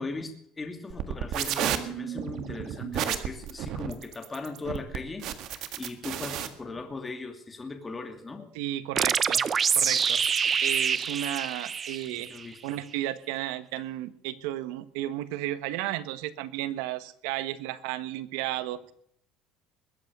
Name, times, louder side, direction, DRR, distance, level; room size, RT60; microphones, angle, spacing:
voice 1, 0.0-5.2 5.5-8.5 10.4-10.5 11.9-12.8, left 3 dB, 15° left, 6 dB, 2.5 m, -39 dB
sound 1, 0.9-6.5, right 10 dB, 55° right, 1.7 m, -32 dB
voice 2, 8.5-9.4 9.7-10.2 10.6-12.3 12.6-18.9, right 14 dB, 90° right, 14 dB, 1.3 m, -33 dB
sound 2, 9.0-12.4, right 6 dB, 30° right, 0.7 m, -26 dB
21.5 x 8.6 x 6.8 m, 0.66 s
cardioid pair, 140°, 0 cm